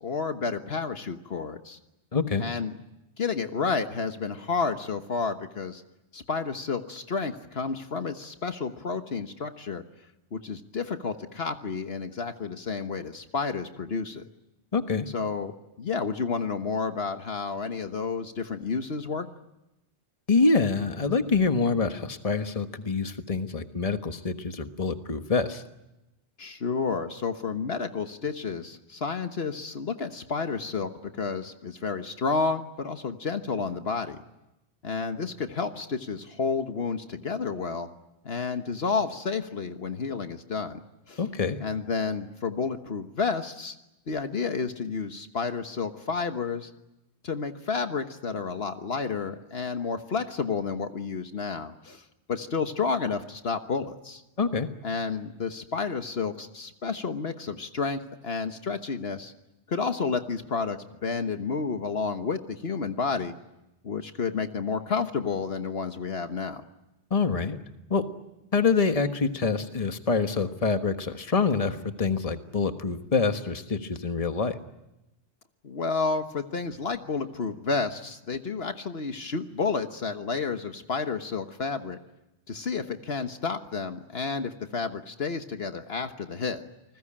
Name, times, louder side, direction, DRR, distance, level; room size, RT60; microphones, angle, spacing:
voice 1, 0.0-1.8 2.4-2.8 3.2-5.8 6.1-9.8 10.3-14.2 15.1-19.3 26.4-34.2 34.8-37.9 38.2-40.8 41.1-41.2 41.6-43.8 44.1-46.7 47.2-54.2 54.8-59.3 59.7-63.3 63.8-66.6 75.6-82.0 82.5-86.6, left 5 dB, 60° left, 8 dB, 1.5 m, -31 dB
voice 2, 2.1-2.4 14.7-15.1 20.3-25.6 41.2-41.6 54.4-54.7 67.1-67.6 67.9-68.1 68.5-74.6, left 4 dB, 30° left, 8 dB, 1.4 m, -26 dB
29.0 x 20.5 x 8.8 m, 0.93 s
omnidirectional pair, 1.2 m